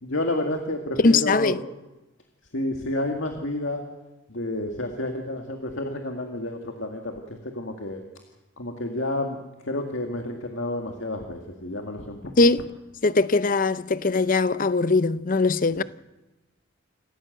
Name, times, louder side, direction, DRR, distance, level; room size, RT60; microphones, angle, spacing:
voice 1, 0.0-1.6 2.5-3.8 4.3-8.0 8.6-9.4 9.6-12.2, left 1 dB, 70° left, 2.0 m, -30 dB
voice 2, 1.0-1.6 12.4-12.7 13.0-15.8, left 3 dB, 40° left, 0.6 m, -21 dB
27.5 x 15.0 x 7.9 m
head